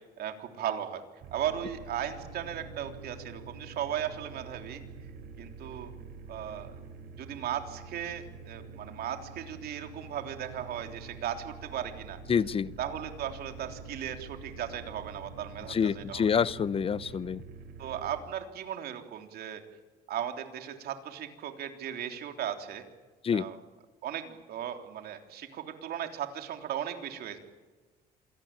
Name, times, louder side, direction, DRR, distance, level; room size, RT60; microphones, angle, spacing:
voice 1, 0.2-1.0 1.3-4.8 5.4-5.9 6.3-6.7 7.2-12.2 12.8-16.3 17.8-19.6 20.1-22.8 23.3-23.6 24.0-27.4, right 10 dB, 65° right, 5 dB, 3.5 m, -36 dB
sound 1, 1.2-18.2, right 4 dB, 80° right, 3.9 m, -46 dB
voice 2, 12.3-12.7 15.7-17.4 23.2-23.5, left 7 dB, 35° left, 18 dB, 0.8 m, -27 dB
27.0 x 18.5 x 9.0 m, 1.3 s
cardioid pair, 110°, 17 cm